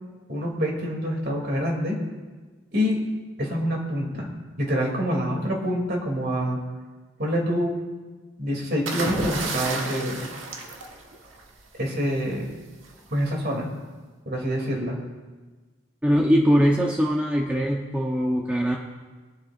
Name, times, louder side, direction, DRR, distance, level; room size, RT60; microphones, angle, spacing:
voice 1, 0.3-2.0 2.7-3.0 3.4-4.3 4.6-6.6 7.2-7.8 8.4-10.2 11.8-12.5 13.1-13.7 14.3-15.0, equal, 50° right, -1 dB, 2.9 m, -26 dB
sound 1, 8.9-11.6 12.8-13.1, right 2 dB, 80° right, 1.5 m, -31 dB
voice 2, 16.0-18.8, equal, 5° right, -2 dB, 0.9 m, -21 dB
23.0 x 10.5 x 2.6 m, 1.3 s
head